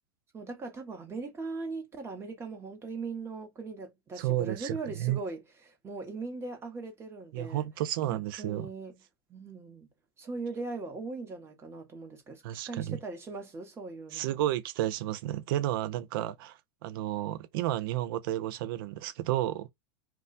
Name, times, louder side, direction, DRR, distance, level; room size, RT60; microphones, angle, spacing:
voice 1, 0.3-7.7 8.0-9.0 9.3-9.9 10.2-14.4, right 3 dB, 20° right, 1.0 m, -40 dB
voice 2, 4.2-5.2 7.3-8.7 12.4-13.0 14.1-19.7, right 13 dB, 60° right, 0.5 m, -32 dB
2.3 x 2.2 x 3.9 m
hypercardioid pair, 120°, 13 cm